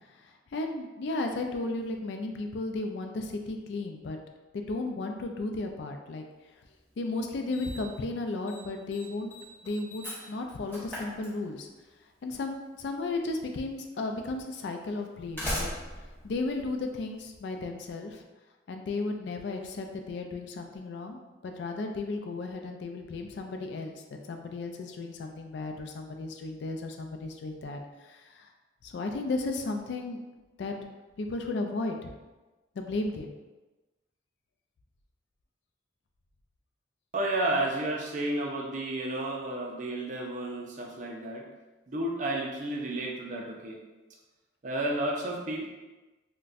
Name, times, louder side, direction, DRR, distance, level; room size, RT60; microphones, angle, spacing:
voice 1, 0.5-4.2 4.5-6.3 7.0-9.3 9.6-11.7 12.2-15.7 16.2-18.2 18.7-23.9 24.3-28.5 28.8-30.2 30.6-30.8 31.2-32.1 32.8-33.3, left 2 dB, 65° left, 4 dB, 0.3 m, -34 dB
Slam, 6.7-6.8 7.5-8.0 8.3-8.6 8.9-11.8 13.0-13.1 13.9-14.0 15.0-17.3, left 1 dB, 10° left, 0.9 m, -38 dB
voice 2, 37.1-41.4 41.9-43.8 44.6-45.7, right 1 dB, 40° right, -1 dB, 0.5 m, -31 dB
4.0 x 2.2 x 2.4 m, 1.1 s
head